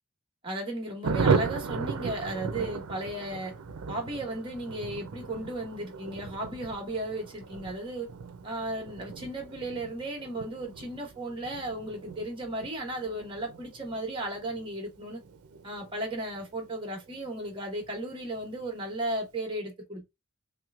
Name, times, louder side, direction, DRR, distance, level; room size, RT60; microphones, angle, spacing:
voice 1, 0.4-3.5 3.9-8.1 8.4-15.2 15.6-20.1, right 1 dB, 25° right, 1.1 m, -35 dB
Thunder, 1.0-17.2 17.4-17.5 17.8-18.0 18.2-18.6, right 5 dB, 85° right, 0.5 m, -35 dB
3.2 x 3.0 x 2.3 m
head